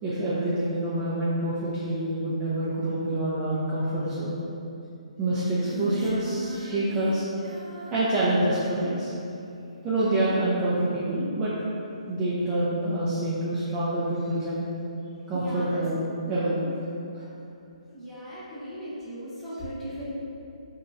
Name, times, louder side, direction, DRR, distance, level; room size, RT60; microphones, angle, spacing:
voice 1, 0.0-4.3 5.2-7.2 7.9-9.1 9.8-11.5 12.1-14.6 15.3-16.7 17.1-17.2, right 1 dB, 20° right, -9 dB, 0.4 m, -26 dB
Female singing, 5.6-9.1, right 1 dB, 75° right, 0.5 m, -39 dB
voice 2, 15.3-15.7 17.9-20.0, equal, 5° left, -12 dB, 0.8 m, -37 dB
2.9 x 2.3 x 2.5 m, 2.6 s
figure-of-eight pair, 135°, 4 cm